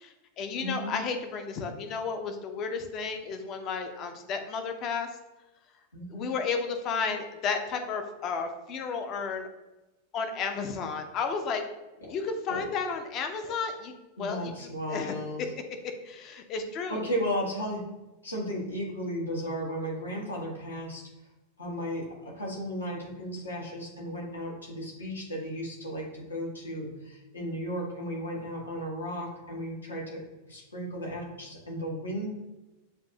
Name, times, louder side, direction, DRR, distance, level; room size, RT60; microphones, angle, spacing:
voice 1, 0.0-5.1 6.1-9.5 10.1-11.6 12.1-13.9 14.2-14.5 14.9-15.1 16.0-17.1, left 5 dB, 35° left, 6 dB, 0.6 m, -32 dB
voice 2, 0.6-1.0 5.9-6.3 12.0-12.1 12.5-12.7 13.4-13.5 14.2-15.4 16.9-17.8 18.2-21.1 21.6-30.2 30.5-32.3, equal, 75° left, -3 dB, 1.3 m, -35 dB
7.4 x 2.6 x 2.7 m, 1.1 s
figure-of-eight pair, 90°, 0 cm